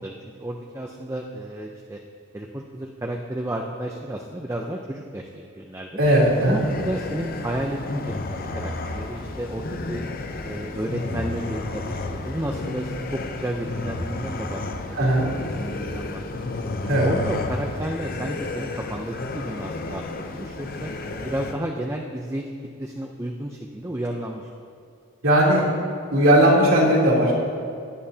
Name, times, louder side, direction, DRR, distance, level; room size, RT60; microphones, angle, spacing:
voice 1, 0.0-2.0 2.3-5.9 6.4-10.0 10.4-15.1 15.6-16.2 17.0-20.9 21.2-22.5 22.8-24.5, right 1 dB, 15° right, 1 dB, 0.5 m, -32 dB
sound 1, 6.0-21.5, left 2 dB, 40° left, 0.6 m, -32 dB
voice 2, 6.0-6.6 15.0-15.3 16.9-17.1 25.2-25.6 26.1-27.3, right 1 dB, 75° right, -4 dB, 3.2 m, -17 dB
17.0 x 11.0 x 2.8 m, 2.4 s
head